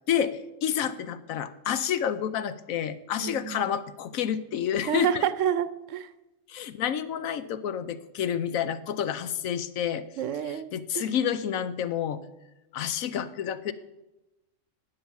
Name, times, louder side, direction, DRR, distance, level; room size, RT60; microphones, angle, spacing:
voice 1, 0.1-5.2 6.5-10.0 10.7-12.2 12.7-13.7, left 9 dB, 80° left, 13 dB, 1.2 m, -29 dB
voice 2, 3.2-3.7 4.9-6.1 10.2-11.1, right 9 dB, 70° right, 14 dB, 1.0 m, -29 dB
12.0 x 8.8 x 7.2 m, 0.99 s
omnidirectional pair, 1.4 m